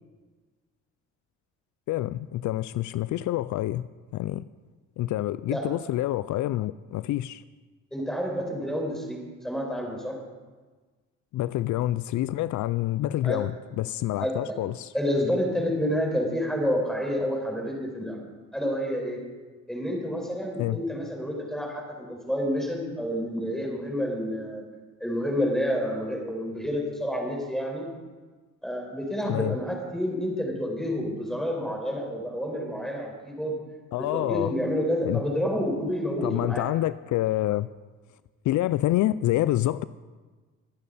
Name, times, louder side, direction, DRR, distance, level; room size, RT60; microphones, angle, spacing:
voice 1, 1.9-3.8 4.1-4.4 5.0-7.4 11.3-14.9 20.6-20.8 29.3-29.6 33.9-34.5 35.0-35.2 36.2-37.7 38.5-39.8, left 15 dB, 75° left, 16 dB, 0.4 m, -27 dB
voice 2, 7.9-10.2 13.2-13.4 14.2-14.6 14.9-18.2 18.5-19.2 19.7-24.6 25.0-27.9 28.6-33.6 34.0-36.7, equal, ahead, -1 dB, 4.7 m, -29 dB
24.0 x 8.5 x 4.2 m, 1.3 s
cardioid pair, 90°, 30 cm